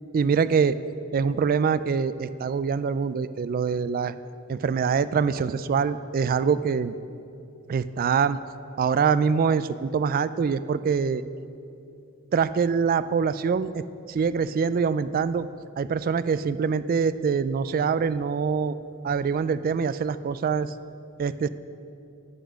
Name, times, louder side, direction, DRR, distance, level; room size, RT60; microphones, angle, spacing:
voice 1, 0.1-0.8 1.1-4.1 4.5-6.9 7.7-8.4 8.8-11.2 12.3-13.8 14.1-15.5 15.8-18.7 19.0-20.7 21.2-21.5, right 6 dB, 40° right, 14 dB, 0.3 m, -24 dB
13.0 x 8.2 x 6.3 m, 2.6 s
head